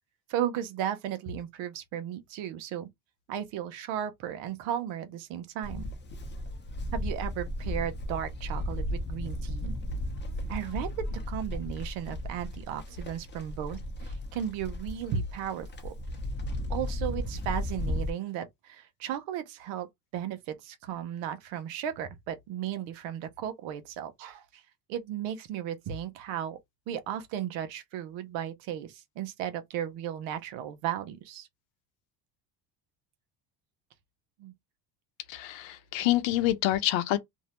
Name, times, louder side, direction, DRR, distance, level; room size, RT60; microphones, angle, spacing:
voice 1, 0.3-2.9 3.3-5.9 6.9-9.8 10.5-15.9 16.7-24.6 24.9-26.6 26.9-31.5 34.4-34.5, right 10 dB, 75° right, 0.8 m, -35 dB
Livestock farm animals working animals, 5.6-18.1, left 1 dB, 25° left, 0.7 m, -35 dB
voice 2, 35.3-37.2, left 15 dB, 75° left, 0.7 m, -27 dB
2.6 x 2.0 x 2.9 m
supercardioid pair, 95°, 46 cm